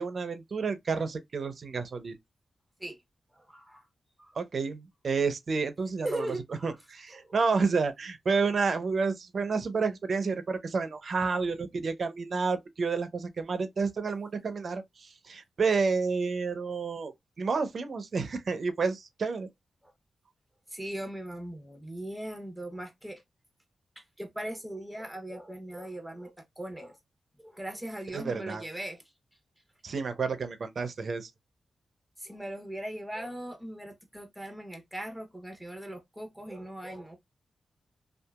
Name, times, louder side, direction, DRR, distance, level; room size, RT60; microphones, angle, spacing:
voice 1, 0.0-2.2 4.4-6.3 6.6-17.1 17.4-19.5 28.1-28.6 29.8-31.3, right 4 dB, 60° right, 0.6 m, -30 dB
voice 2, 3.3-3.9 4.2-4.4 6.0-6.8 7.1-7.4 19.8-19.9 20.7-23.2 24.0-27.0 27.4-29.0 32.2-37.2, right 1 dB, 5° right, 1.1 m, -39 dB
2.8 x 2.4 x 2.3 m
cardioid pair, 65°, 0 cm